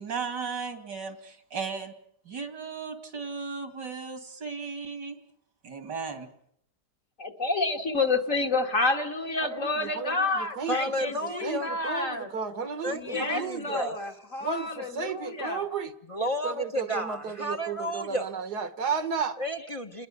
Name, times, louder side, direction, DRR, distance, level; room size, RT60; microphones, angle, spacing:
voice 1, 0.0-1.9 2.2-5.2 5.6-6.3, right 5 dB, 85° right, 7 dB, 3.4 m, -35 dB
voice 2, 7.2-12.3 12.9-15.6, left 3 dB, 50° left, 4 dB, 2.5 m, -29 dB
voice 3, 9.4-13.8 14.4-16.0 16.4-19.4, right 6 dB, 70° right, 11 dB, 2.0 m, -33 dB
voice 4, 10.7-11.7 12.8-13.9 16.1-18.2 19.4-20.1, equal, 20° left, 4 dB, 1.2 m, -32 dB
28.5 x 20.5 x 5.7 m, 0.67 s
omnidirectional pair, 1.8 m